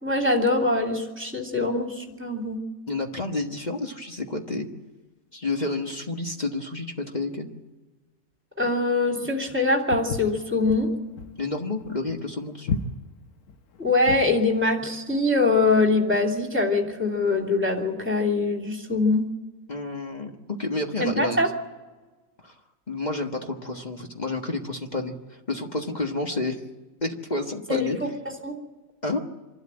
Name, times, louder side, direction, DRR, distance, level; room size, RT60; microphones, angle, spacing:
voice 1, 0.0-2.6 8.6-10.9 13.8-19.2 21.0-21.5 27.7-28.1 28.4-28.6, left 2 dB, 10° right, 2 dB, 3.0 m, -23 dB
voice 2, 2.9-4.7 5.3-7.5 11.4-12.8 19.7-20.3 20.6-21.5 22.4-22.5 22.9-25.1 25.5-26.6 27.0-28.0 29.0-29.2, left 2 dB, 35° left, 3 dB, 1.5 m, -30 dB
Walk footsteps, 9.9-14.4, left 4 dB, 65° left, 1.4 m, -33 dB
26.0 x 12.5 x 8.9 m, 1.2 s
omnidirectional pair, 1.4 m